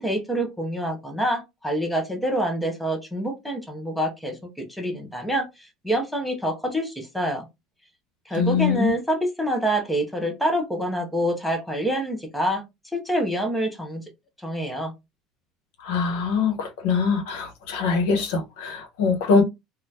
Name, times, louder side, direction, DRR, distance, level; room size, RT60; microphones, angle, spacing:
voice 1, 0.0-7.5 8.3-12.6 12.9-14.0 14.4-14.9, right 1 dB, ahead, 0.6 m, -26 dB
voice 2, 8.4-8.9 15.8-19.4, left 5 dB, 90° left, 0.9 m, -23 dB
3.6 x 2.2 x 2.6 m
cardioid pair, 180°, 0 cm